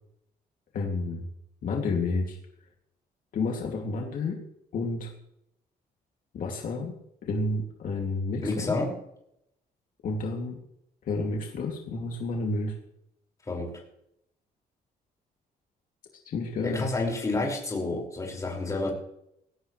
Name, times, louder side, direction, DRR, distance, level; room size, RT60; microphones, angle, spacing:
voice 1, 0.7-1.3 1.6-2.4 3.3-4.4 4.7-5.1 6.3-8.8 10.0-10.6 11.0-12.8 16.2-16.9, left 3 dB, 60° left, 1 dB, 2.6 m, -30 dB
voice 2, 8.4-8.9 13.5-13.8 16.6-18.9, left 2 dB, 20° left, -1 dB, 5.6 m, -29 dB
21.0 x 17.5 x 3.3 m, 0.77 s
cardioid pair, 140°, 16 cm